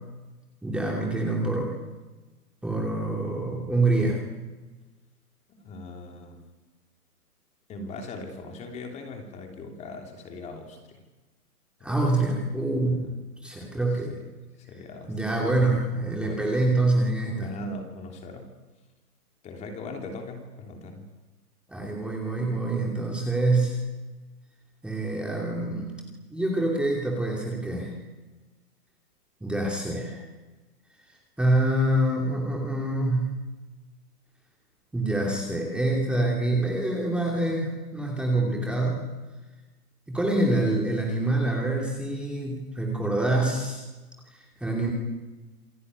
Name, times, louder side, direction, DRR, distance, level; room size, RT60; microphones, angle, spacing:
voice 1, 0.6-1.7 2.6-4.2 11.8-13.0 13.4-14.1 15.1-17.5 21.7-23.8 24.8-25.9 26.3-28.0 29.4-30.2 31.4-33.4 34.9-39.0 40.1-43.8 44.3-44.9, right 2 dB, ahead, -1 dB, 2.8 m, -26 dB
voice 2, 5.5-6.4 7.7-11.0 11.8-11.9 12.8-13.1 14.1-14.3 14.7-15.3 16.2-16.6 17.2-18.5 19.4-21.1, left 2 dB, 15° left, 3 dB, 3.2 m, -40 dB
28.0 x 21.0 x 9.6 m, 1.2 s
hypercardioid pair, 155°, 46 cm